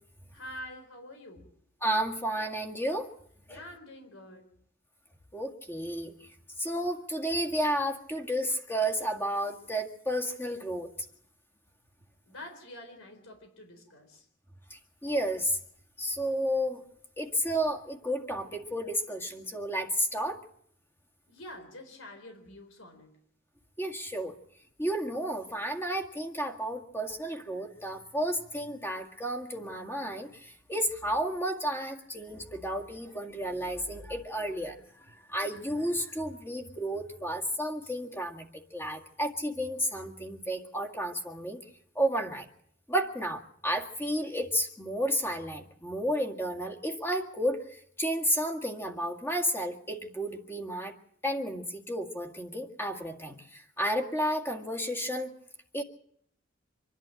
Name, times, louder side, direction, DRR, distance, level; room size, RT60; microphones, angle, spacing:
voice 1, 0.3-1.5 3.5-4.5 12.2-14.3 21.3-23.2, left 1 dB, 90° left, 5 dB, 4.3 m, -46 dB
voice 2, 1.8-3.1 3.5-3.6 5.3-6.1 6.6-10.9 14.7-15.6 16.0-16.8 17.2-20.4 23.8-24.3 24.8-41.6 42.0-42.5 42.9-50.9 51.2-55.3 55.7-55.8, equal, 10° left, 4 dB, 1.9 m, -32 dB
26.0 x 11.0 x 8.9 m, 0.67 s
head